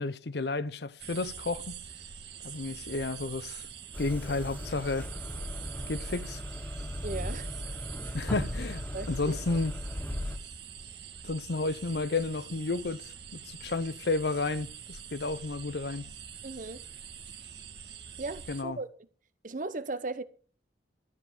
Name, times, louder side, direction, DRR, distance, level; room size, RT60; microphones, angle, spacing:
voice 1, 0.0-1.8 2.4-3.7 4.0-5.1 5.9-6.4 8.1-9.7 11.2-13.0 13.3-16.0 18.5-18.8, left 3 dB, 60° left, 0.7 m, -32 dB
sound 1, 1.0-18.6, right 7 dB, 65° right, 1.7 m, -45 dB
sound 2, 3.9-10.4, left 1 dB, 10° left, 1.2 m, -37 dB
voice 2, 7.0-7.5 8.9-9.4 10.2-10.3 16.4-16.9 18.2-18.9 19.4-20.2, right 3 dB, 45° right, 0.9 m, -37 dB
13.5 x 5.3 x 9.1 m
head